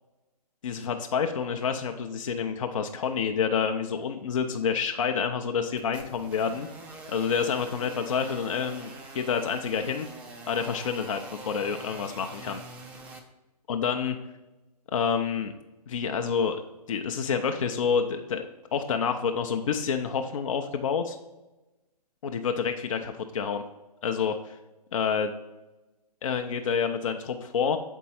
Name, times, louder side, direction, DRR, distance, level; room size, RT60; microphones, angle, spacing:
voice 1, 0.6-6.7 7.1-10.1 10.5-12.6 13.7-14.2 14.9-15.5 15.9-16.6 16.9-18.5 18.7-21.2 22.2-23.6 24.0-24.6 24.9-25.3 26.2-27.8, left 6 dB, 50° left, 5 dB, 0.6 m, -28 dB
sound 1, 5.8-13.2, right 2 dB, 5° right, 0.3 m, -45 dB
7.4 x 4.5 x 4.2 m, 1.1 s
figure-of-eight pair, 135°, 21 cm